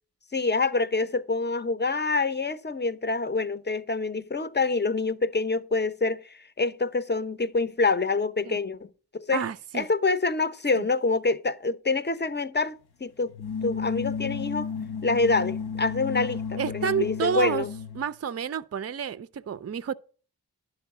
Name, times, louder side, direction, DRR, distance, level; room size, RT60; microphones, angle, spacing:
voice 1, 0.3-9.5 9.7-13.3 13.6-14.7 15.0-17.7, left 3 dB, 25° left, 0.7 m, -26 dB
voice 2, 9.3-9.9 10.7-10.9 16.6-17.6 18.0-19.9, right 7 dB, 40° right, 0.5 m, -29 dB
sound 1, 13.3-18.1, left 6 dB, 70° left, 0.8 m, -33 dB
11.0 x 4.7 x 6.6 m
cardioid pair, 45°, 39 cm